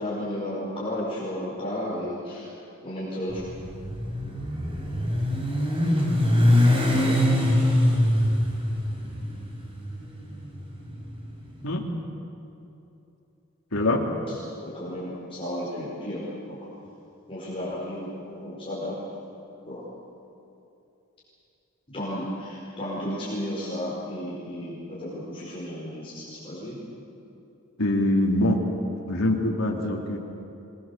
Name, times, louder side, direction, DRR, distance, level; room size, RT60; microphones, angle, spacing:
voice 1, 0.0-2.5 2.8-3.4 14.6-16.6 17.3-19.0 19.7-19.8 21.9-26.8, left 1 dB, 25° left, -8 dB, 5.3 m, -33 dB
Motorcycle, 3.3-11.5, left 1 dB, 25° right, 4.6 m, -23 dB
voice 2, 13.7-14.0 27.8-28.6 29.1-30.2, left 1 dB, 85° left, 0 dB, 2.9 m, -23 dB
26.0 x 22.0 x 7.4 m, 2.8 s
head